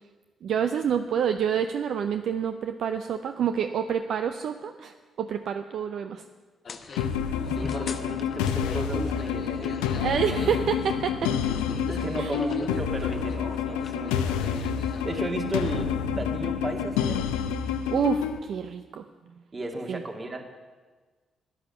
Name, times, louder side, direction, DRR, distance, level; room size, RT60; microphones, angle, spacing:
voice 1, 0.4-6.2 6.9-7.0 10.0-11.3 12.2-12.4 17.9-19.0 19.9-20.0, right 8 dB, 65° right, 8 dB, 0.5 m, -28 dB
sound 1, 6.7-15.6, left 5 dB, 50° left, 0.9 m, -40 dB
sound 2, 7.0-18.4, left 7 dB, 80° left, 0.6 m, -28 dB
voice 2, 7.6-10.1 10.3-10.4 11.9-17.3 19.5-20.4, right 2 dB, 35° right, 2 dB, 2.3 m, -34 dB
12.5 x 10.0 x 7.0 m, 1.4 s
hypercardioid pair, 40°, 0 cm